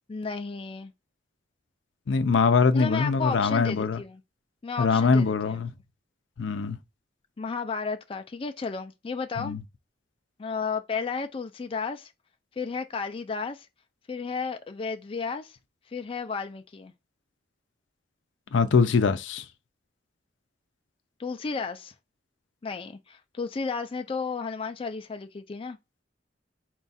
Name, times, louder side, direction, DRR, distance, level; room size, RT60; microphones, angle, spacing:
voice 1, 0.1-0.9 2.7-4.2 4.6-5.6 7.4-9.6 10.4-12.1 12.6-13.7 14.1-15.6 15.9-16.9 21.2-21.9 22.6-25.8, left 5 dB, 30° left, 0.4 m, -33 dB
voice 2, 2.1-4.0 4.8-5.7 6.4-6.8 9.4-9.6 18.5-19.4, left 5 dB, 90° left, 0.5 m, -23 dB
4.4 x 2.4 x 4.0 m
head